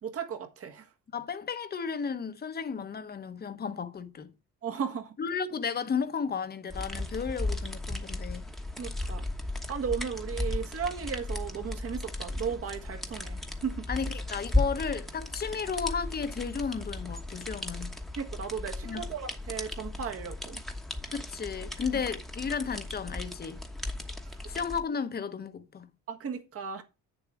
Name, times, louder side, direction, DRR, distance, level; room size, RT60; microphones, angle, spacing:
voice 1, 0.0-0.8 4.6-5.1 8.8-9.2 9.7-13.8 18.2-20.6 26.1-26.8, right 7 dB, 50° right, 1.6 m, -35 dB
voice 2, 1.1-4.3 5.2-8.5 13.9-18.0 18.8-19.1 21.1-23.6 24.5-25.9, left 6 dB, 30° left, 0.9 m, -34 dB
sound 1, 6.7-24.8, left 2 dB, ahead, 1.1 m, -35 dB
8.8 x 7.1 x 4.7 m
cardioid pair, 140°, 31 cm